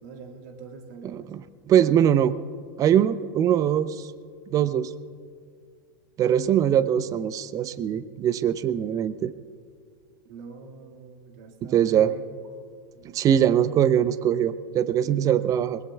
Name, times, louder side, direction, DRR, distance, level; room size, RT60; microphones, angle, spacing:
voice 1, 0.0-1.3 10.3-12.4, right 4 dB, 55° right, 3 dB, 1.9 m, -43 dB
voice 2, 1.1-2.3 2.8-4.1 4.5-4.9 6.2-9.3 11.6-12.1 13.1-15.8, right 9 dB, 30° right, 15 dB, 0.6 m, -22 dB
22.5 x 20.5 x 2.3 m, 2.2 s
figure-of-eight pair, 90°, 11 cm